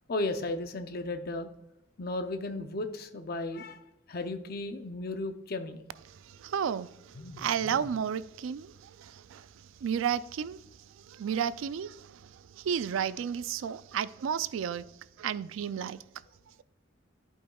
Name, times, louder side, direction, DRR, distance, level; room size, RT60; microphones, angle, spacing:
voice 1, 0.1-1.5 2.0-3.8 4.1-5.8 7.1-7.9, left 2 dB, 50° left, 0.6 m, -35 dB
voice 2, 6.4-6.9 7.4-8.7 9.0-9.5 9.8-10.6 11.1-12.1 12.6-14.8 15.2-16.0, right 8 dB, 85° right, 0.3 m, -32 dB
11.5 x 5.5 x 2.3 m
head